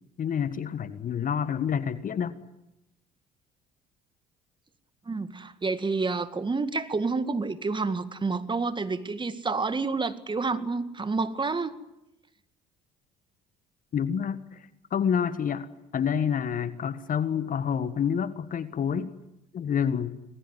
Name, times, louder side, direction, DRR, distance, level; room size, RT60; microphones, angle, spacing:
voice 1, 0.2-2.4 13.9-19.1 19.5-20.2, left 7 dB, 40° left, 14 dB, 1.6 m, -28 dB
voice 2, 5.1-11.8, right 4 dB, 25° right, 12 dB, 2.0 m, -29 dB
26.5 x 20.5 x 9.7 m, 0.91 s
figure-of-eight pair, 55°, 21 cm